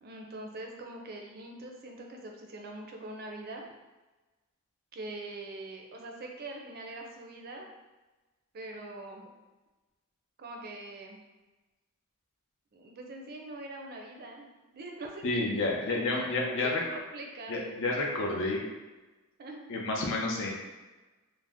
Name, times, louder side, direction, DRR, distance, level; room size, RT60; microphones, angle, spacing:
voice 1, 0.0-3.7 4.9-7.7 8.5-9.2 10.4-11.2 12.7-14.5 14.7-18.0 19.4-19.7, right 2 dB, 45° right, 2 dB, 0.4 m, -43 dB
voice 2, 15.2-16.8 17.5-18.6 19.7-20.5, left 2 dB, 60° left, -1 dB, 0.6 m, -30 dB
2.6 x 2.0 x 3.4 m, 1.2 s
head